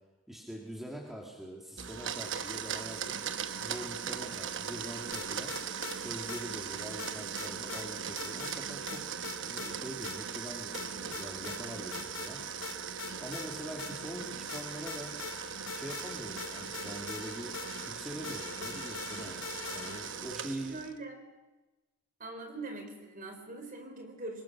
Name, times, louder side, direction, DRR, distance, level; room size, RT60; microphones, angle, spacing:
voice 1, 0.3-3.2 3.6-5.5 5.9-9.1 9.4-12.4 12.9-15.2 15.7-17.6 17.9-20.8, right 1 dB, ahead, -2 dB, 2.4 m, -44 dB
Domestic sounds home sounds, 1.8-21.0, right 7 dB, 60° right, 1.0 m, -39 dB
sound 1, 5.1-6.0 6.3-6.4 7.0-7.9 8.2-8.6 8.9-9.7 10.0-10.2 10.7-11.6 11.9-12.3 12.6-14.2 14.5-20.3, left 6 dB, 65° left, 2.7 m, -43 dB
voice 2, 20.2-21.2 22.2-24.4, right 2 dB, 40° right, 5 dB, 4.0 m, -43 dB
25.0 x 21.5 x 6.1 m, 1.1 s
head